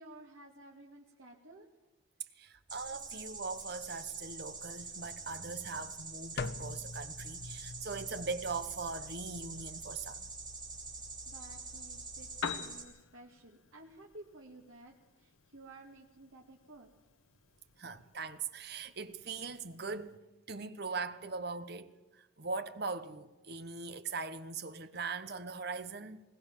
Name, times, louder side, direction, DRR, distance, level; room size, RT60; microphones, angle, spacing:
voice 1, 0.0-1.7 11.3-16.9, right 2 dB, 85° right, 2.1 m, -54 dB
voice 2, 2.4-10.3 17.8-26.2, right 4 dB, 50° right, 1.2 m, -41 dB
sound 1, 2.7-12.8, right 4 dB, 20° right, 3.3 m, -45 dB
sound 2, 6.4-12.6, left 3 dB, 50° left, 0.6 m, -47 dB
Piano, 12.2-20.2, left 6 dB, 85° left, 1.2 m, -48 dB
21.0 x 18.5 x 7.3 m
head